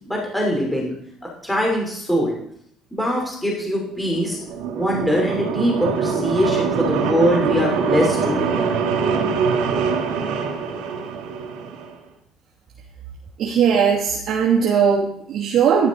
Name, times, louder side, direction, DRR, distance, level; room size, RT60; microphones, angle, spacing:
voice 1, 0.1-0.9 1.4-2.3 2.9-4.4 4.7-8.7, equal, 5° left, -2 dB, 5.6 m, -22 dB
sound 1, 4.0-11.9, right 5 dB, 90° right, 3.1 m, -23 dB
voice 2, 13.4-15.9, right 7 dB, 55° right, -3 dB, 2.5 m, -18 dB
14.0 x 11.5 x 4.7 m, 0.65 s
cardioid pair, 110°, 0 cm